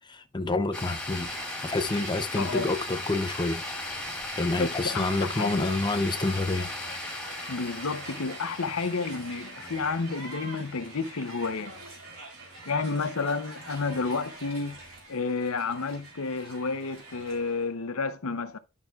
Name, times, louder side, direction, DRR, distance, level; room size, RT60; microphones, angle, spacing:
voice 1, 0.1-1.4 1.6-3.6 4.4-6.7, left 2 dB, 20° left, 0.7 m, -28 dB
sound 1, 0.7-11.0, left 2 dB, 5° left, 2.0 m, -38 dB
Crowd, 1.0-17.7, right 2 dB, 65° right, 3.8 m, -45 dB
voice 2, 4.5-5.7 7.5-11.8 12.7-14.8 15.1-18.6, left 4 dB, 85° left, 0.8 m, -31 dB
11.5 x 5.9 x 2.4 m
head